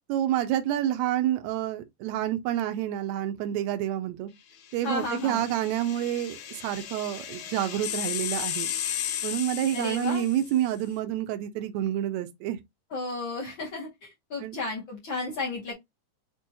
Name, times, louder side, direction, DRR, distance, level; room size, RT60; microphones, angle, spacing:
voice 1, 0.1-4.3 4.7-8.7 9.2-12.6 14.4-14.6, right 11 dB, 80° right, 1.6 m, -28 dB
sound 1, 4.7-10.6, left 10 dB, 70° left, 2.0 m, -35 dB
voice 2, 4.8-5.5 9.7-10.2 12.9-15.7, left 3 dB, 85° left, 1.0 m, -33 dB
6.0 x 2.3 x 2.6 m
omnidirectional pair, 4.0 m